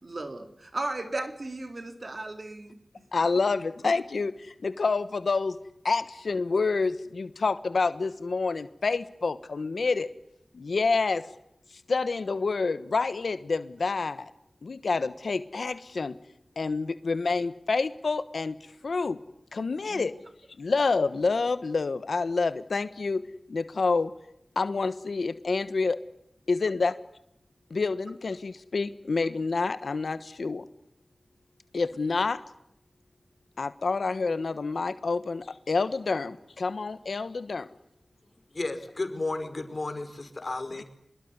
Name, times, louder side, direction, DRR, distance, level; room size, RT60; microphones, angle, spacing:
voice 1, 0.0-2.8 19.9-20.0, right 2 dB, 50° right, 7 dB, 3.6 m, -35 dB
voice 2, 3.1-5.6 5.8-10.1 10.5-11.2 11.9-14.3 14.6-16.1 16.6-18.6 18.8-19.2 19.5-20.1 20.6-23.2 23.5-24.1 24.5-26.0 26.5-26.9 27.7-30.6 31.7-32.4 33.6-37.7, left 4 dB, 80° left, 13 dB, 1.2 m, -28 dB
voice 3, 38.5-40.8, left 2 dB, 50° left, 8 dB, 5.1 m, -33 dB
25.5 x 21.5 x 9.7 m, 0.76 s
wide cardioid pair, 55°, 0 cm